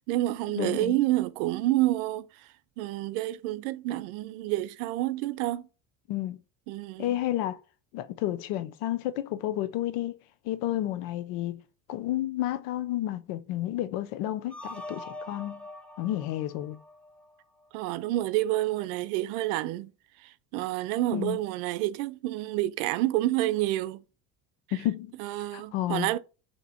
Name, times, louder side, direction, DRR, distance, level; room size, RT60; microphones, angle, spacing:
voice 1, 0.0-2.3 2.8-5.6 6.7-7.1 17.7-19.9 20.2-24.0 25.2-26.2, right 16 dB, 80° right, 0.6 m, -28 dB
voice 2, 0.5-1.0 6.1-6.4 7.0-7.6 7.9-10.2 10.4-11.6 11.9-15.6 16.0-16.8 21.1-21.4 24.7-25.1 25.5-26.1, left 13 dB, 75° left, 0.6 m, -31 dB
sound 1, 14.5-17.6, left 1 dB, 5° left, 0.7 m, -43 dB
3.4 x 2.8 x 4.3 m
supercardioid pair, 100°, 42 cm